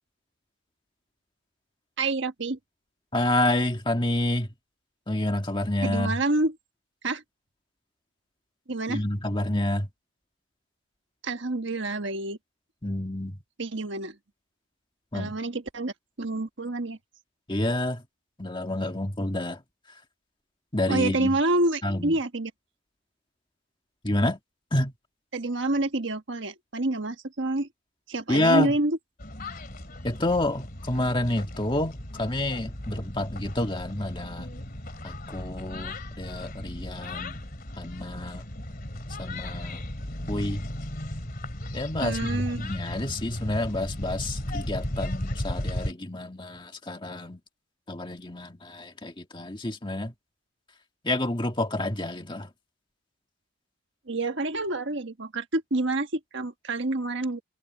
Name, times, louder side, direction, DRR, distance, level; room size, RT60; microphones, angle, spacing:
voice 1, 2.0-2.6 5.8-6.5 7.0-7.2 8.7-9.0 11.2-12.4 13.6-14.2 15.1-17.0 20.9-22.5 25.3-27.7 28.1-29.0 42.0-42.6 54.1-57.4, right 2 dB, 60° right, 1.5 m, -28 dB
voice 2, 3.1-4.5 5.1-6.2 8.9-9.9 12.8-13.4 15.1-15.3 17.5-18.0 18.4-19.6 20.7-21.4 21.8-22.2 24.0-24.4 24.7-24.9 28.3-28.8 30.0-34.5 35.0-37.4 37.8-38.5 39.2-39.9 40.3-40.6 41.7-47.4 47.9-50.1 51.0-52.5, left 1 dB, 25° left, 1.8 m, -28 dB
sound 1, 29.2-45.9, left 1 dB, 45° left, 3.0 m, -36 dB
head